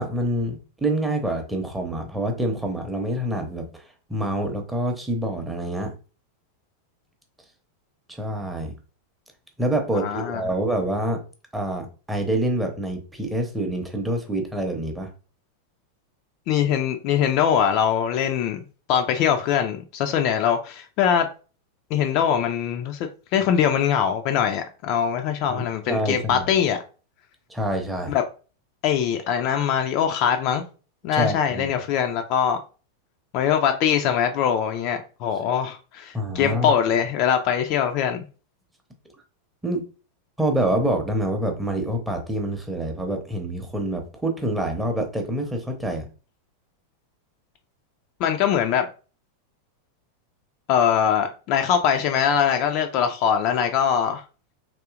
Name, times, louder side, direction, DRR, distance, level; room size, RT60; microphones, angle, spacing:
voice 1, 0.0-3.8 4.1-5.9 8.1-8.7 9.6-11.2 11.5-15.1 25.5-26.5 27.5-28.1 31.1-31.7 36.1-36.7 39.6-39.9 40.4-46.1, right 1 dB, 5° right, 0.7 m, -26 dB
voice 2, 9.9-10.4 16.5-18.6 18.9-21.3 21.9-26.8 28.1-28.2 28.8-30.6 31.0-32.6 33.3-38.2 48.2-48.9 50.7-54.2, left 8 dB, 40° left, 0.4 m, -22 dB
3.6 x 2.7 x 2.4 m
figure-of-eight pair, 90°, 0 cm